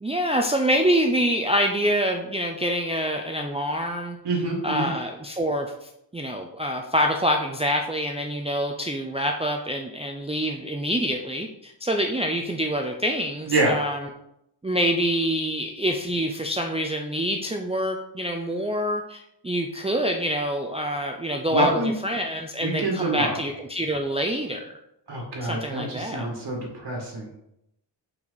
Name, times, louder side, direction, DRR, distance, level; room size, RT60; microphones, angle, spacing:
voice 1, 0.0-4.2 4.6-14.1 14.6-24.8 25.4-26.3, equal, 15° right, 2 dB, 0.5 m, -26 dB
voice 2, 4.2-4.9 13.5-13.8 21.5-21.9 22.6-23.3 25.1-27.3, right 2 dB, 70° right, -1 dB, 1.9 m, -26 dB
6.3 x 6.0 x 4.0 m, 0.81 s
wide cardioid pair, 145°, 42 cm